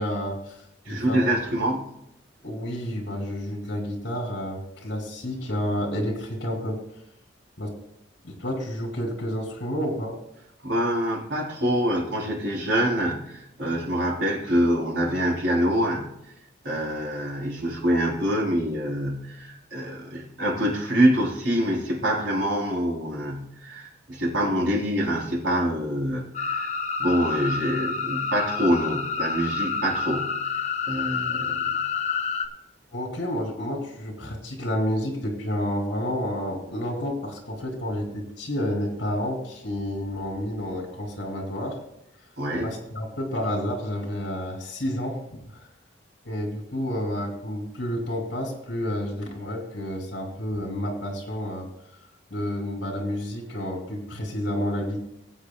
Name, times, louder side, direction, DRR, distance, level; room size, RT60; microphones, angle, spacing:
voice 1, 0.0-1.2 2.4-6.8 7.6-7.7 8.2-10.1 32.9-41.8 42.6-45.2 45.5-45.6 46.2-51.6 52.3-55.0, equal, 60° left, 1 dB, 2.9 m, -30 dB
voice 2, 0.9-1.9 10.6-16.1 16.6-26.7 27.0-30.4 30.9-31.9 42.4-42.7, equal, 85° right, -3 dB, 3.7 m, -25 dB
sound 1, 26.3-32.5, left 5 dB, 35° left, 0.9 m, -28 dB
20.5 x 8.2 x 2.3 m, 0.80 s
head